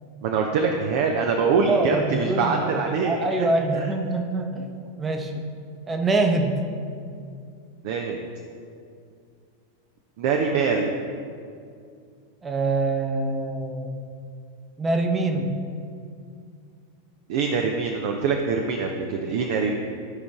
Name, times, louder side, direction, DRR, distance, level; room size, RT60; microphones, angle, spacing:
voice 1, 0.2-3.5 3.7-3.9 7.8-8.2 10.2-10.9 17.3-19.7, right 5 dB, 50° right, 2 dB, 0.6 m, -24 dB
voice 2, 1.7-2.8 3.0-5.3 5.9-6.6 12.4-14.0 14.8-15.6, right 3 dB, 15° right, 4 dB, 0.9 m, -25 dB
13.0 x 5.2 x 3.6 m, 2.3 s
figure-of-eight pair, 90°, 0 cm